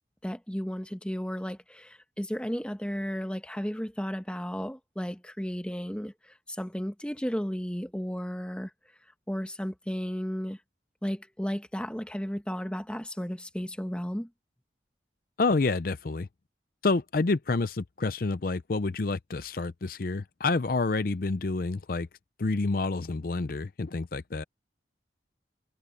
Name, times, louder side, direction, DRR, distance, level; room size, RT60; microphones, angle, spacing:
voice 1, 0.2-8.7 9.3-10.6 11.0-14.3, equal, 5° left, 1.2 m, -34 dB
voice 2, 15.4-16.3 16.8-22.1 22.4-24.4, left 3 dB, 50° left, 0.5 m, -28 dB
head